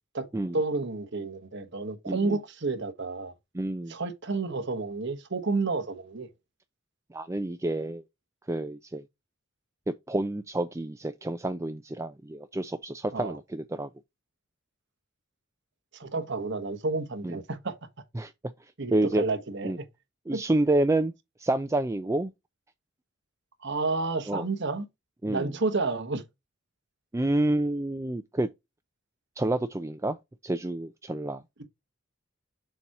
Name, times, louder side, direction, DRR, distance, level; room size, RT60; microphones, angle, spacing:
voice 1, 0.5-3.3 3.9-6.3 13.1-13.4 15.9-17.8 18.8-19.8 20.3-20.4 23.6-24.9 25.3-26.2, right 3 dB, 60° right, 1.2 m, -30 dB
voice 2, 2.1-2.4 3.5-3.9 7.1-8.0 8.5-9.1 10.1-13.9 17.2-17.4 18.1-18.3 18.9-19.2 19.6-19.8 20.3-21.1 21.4-22.3 24.3-24.5 25.2-25.5 27.1-28.5 29.4-30.2 30.4-31.4, right 1 dB, 15° right, 0.4 m, -28 dB
7.0 x 2.9 x 4.7 m
head